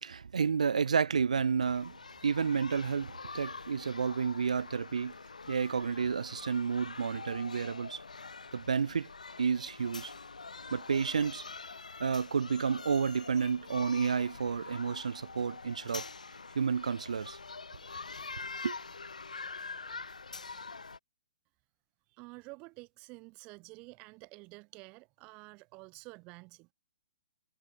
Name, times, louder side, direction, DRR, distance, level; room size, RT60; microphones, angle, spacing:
voice 1, 0.0-5.1 5.5-8.0 8.5-9.1 9.4-10.1 10.7-11.5 12.0-16.0 16.5-17.4 18.6-18.8, right 6 dB, 70° right, 1.5 m, -31 dB
sound 1, 1.7-21.0, left 4 dB, 85° left, 3.0 m, -45 dB
voice 2, 22.1-26.7, right 26 dB, 30° right, 1.7 m, -50 dB
figure-of-eight pair, 135°, 4 cm